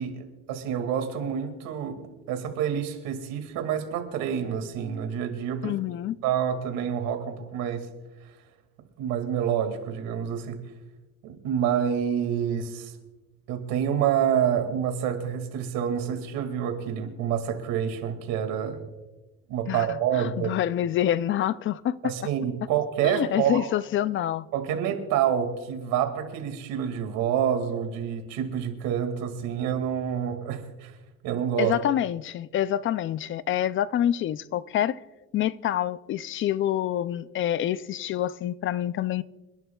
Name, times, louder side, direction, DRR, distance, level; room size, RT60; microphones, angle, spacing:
voice 1, 0.0-2.0 2.3-5.7 6.2-7.9 9.0-10.6 11.2-13.0 13.5-18.8 19.5-20.5 22.0-23.7 24.5-30.9 31.2-31.7, right 9 dB, 90° right, 2.2 m, -27 dB
voice 2, 5.6-6.2 19.7-19.9 20.2-22.0 23.0-24.5 31.6-35.0 35.3-39.2, left 11 dB, 40° left, 0.4 m, -27 dB
28.0 x 11.0 x 2.3 m
cardioid pair, 135°, 33 cm